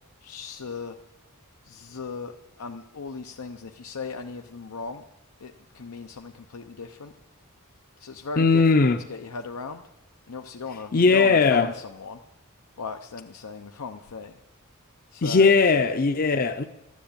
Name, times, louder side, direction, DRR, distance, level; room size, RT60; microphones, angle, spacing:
voice 1, 0.2-1.0 1.6-5.0 5.4-7.1 8.0-9.8 10.3-12.2 12.8-14.4 15.1-15.6, left 4 dB, 90° left, 0.7 m, -37 dB
voice 2, 8.4-9.0 10.9-11.7 15.2-16.6, left 4 dB, 40° left, 0.6 m, -19 dB
13.0 x 10.5 x 8.6 m
head